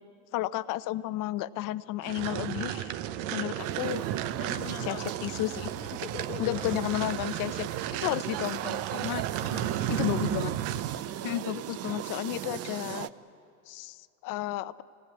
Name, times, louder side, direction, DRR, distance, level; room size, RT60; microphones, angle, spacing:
voice 1, 0.3-3.0 3.3-4.0 4.9-5.0 5.2-5.7 6.4-7.7 8.0-9.2 9.9-10.5 11.2-13.1 13.7-14.0 14.2-14.8, left 15 dB, 45° left, 16 dB, 0.8 m, -32 dB
sound 1, 2.0-11.0, right 12 dB, 60° right, 1.2 m, -33 dB
sound 2, 3.6-13.1, right 12 dB, 35° right, 0.8 m, -39 dB
voice 2, 4.4-5.1 5.7-6.8 9.4-9.9 11.2-11.4, left 12 dB, 75° left, 8 dB, 1.2 m, -42 dB
26.0 x 17.5 x 9.6 m, 2.6 s
hypercardioid pair, 100°, 43 cm